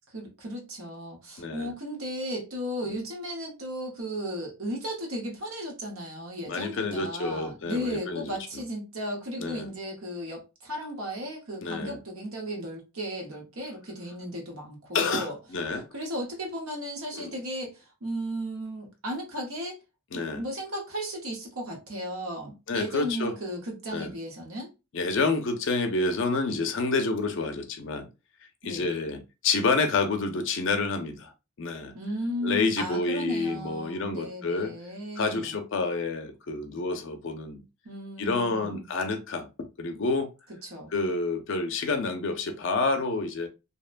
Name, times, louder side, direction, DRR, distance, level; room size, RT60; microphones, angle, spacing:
voice 1, 0.1-15.4 15.9-19.8 20.1-24.7 28.6-28.9 31.9-35.6 37.8-38.9 40.6-40.9, equal, 75° right, 0.9 m, -35 dB
voice 2, 1.4-1.7 6.5-8.4 9.4-9.7 11.6-12.0 14.9-15.9 17.1-17.3 20.1-20.4 22.7-23.3 23.9-24.1 24.9-28.1 28.6-31.3 31.6-31.9 32.4-34.7 35.2-37.6 38.2-39.5 39.8-40.3 40.9-43.5, left 3 dB, 55° left, 0.5 m, -28 dB
2.7 x 2.1 x 2.4 m
head